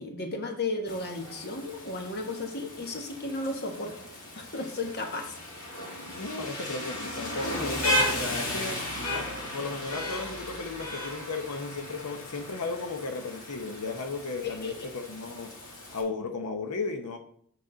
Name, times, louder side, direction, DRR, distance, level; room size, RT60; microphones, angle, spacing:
voice 1, 0.0-3.9 4.4-5.3 14.4-14.9, left 2 dB, 45° left, 4 dB, 1.2 m, -34 dB
Rain, 0.9-16.0, left 1 dB, 65° left, 2.2 m, -35 dB
voice 2, 6.0-8.8 9.1-15.5 15.9-17.2, left 3 dB, 90° left, 5 dB, 0.8 m, -35 dB
8.2 x 5.9 x 3.8 m, 0.63 s
head